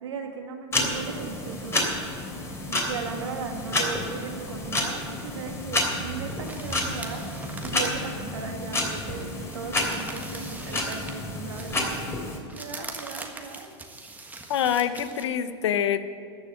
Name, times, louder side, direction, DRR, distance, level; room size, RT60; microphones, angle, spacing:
voice 1, 0.0-1.9 2.7-7.2 7.6-12.0 12.5-13.7, right 5 dB, 85° right, 3 dB, 2.0 m, -37 dB
sound 1, 0.7-12.4, left 1 dB, 20° left, 3.1 m, -30 dB
sound 2, 6.4-11.2 11.5-15.2, right 3 dB, 10° right, 1.5 m, -42 dB
voice 2, 14.5-16.0, left 9 dB, 80° left, 13 dB, 0.8 m, -25 dB
14.0 x 7.2 x 9.9 m, 2.4 s
hypercardioid pair, 100°, 14 cm